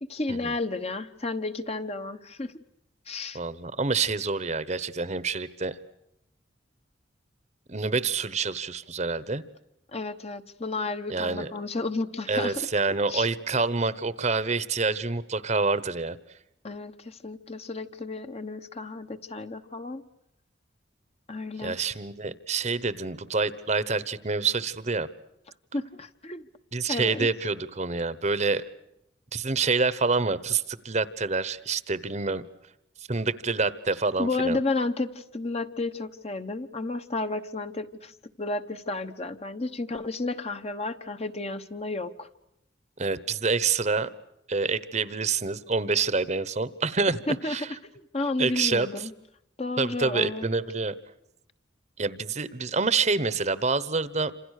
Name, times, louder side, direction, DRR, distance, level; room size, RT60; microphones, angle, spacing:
voice 1, 0.0-2.5 3.1-3.4 9.9-12.7 13.1-13.3 16.6-20.0 21.3-21.9 25.7-26.5 26.9-27.3 34.2-42.3 47.3-47.7 48.1-49.1 49.6-50.5, left 2 dB, 35° left, 8 dB, 1.1 m, -32 dB
voice 2, 3.3-5.8 7.7-9.4 11.1-11.5 12.3-16.2 21.6-25.1 26.7-28.6 29.3-32.4 33.1-34.6 43.0-44.1 44.5-47.7 48.4-48.9 49.8-50.9 52.0-54.3, right 4 dB, 35° right, 16 dB, 1.0 m, -27 dB
28.0 x 27.0 x 6.6 m, 0.83 s
head